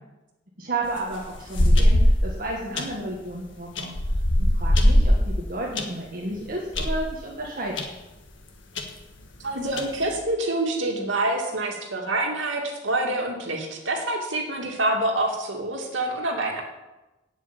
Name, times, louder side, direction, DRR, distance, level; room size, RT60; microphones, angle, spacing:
voice 1, 0.6-3.9 4.4-7.8, right 2 dB, 50° right, -3 dB, 1.7 m, -32 dB
sound 1, 0.8-2.3 2.8-3.0 3.8-5.9 6.3-6.4 6.7-7.0 7.8-7.9 8.2-8.3 8.8-8.9 9.6-10.1, left 1 dB, 75° left, 1.6 m, -20 dB
voice 2, 9.4-16.6, right 2 dB, 85° right, 0 dB, 2.5 m, -26 dB
8.2 x 8.1 x 8.9 m, 1.0 s
head